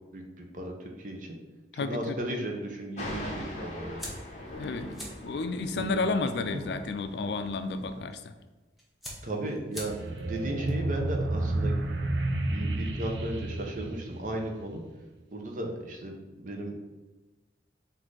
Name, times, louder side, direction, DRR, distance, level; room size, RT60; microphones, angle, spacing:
voice 1, 0.1-1.4 1.7-4.1 5.7-6.0 9.2-9.9 10.2-11.8 12.5-14.8 15.3-16.8, right 1 dB, 45° right, 2 dB, 0.7 m, -35 dB
voice 2, 1.8-2.2 4.6-4.9 5.2-8.2, left 3 dB, 70° left, 9 dB, 0.4 m, -31 dB
Thunder, 3.0-8.0, left 1 dB, 40° left, 0.9 m, -41 dB
sound 1, 4.0-12.5, equal, ahead, 0.8 m, -48 dB
sound 2, 9.8-14.8, right 2 dB, 85° right, 0.6 m, -31 dB
4.1 x 2.6 x 4.7 m, 1.2 s
head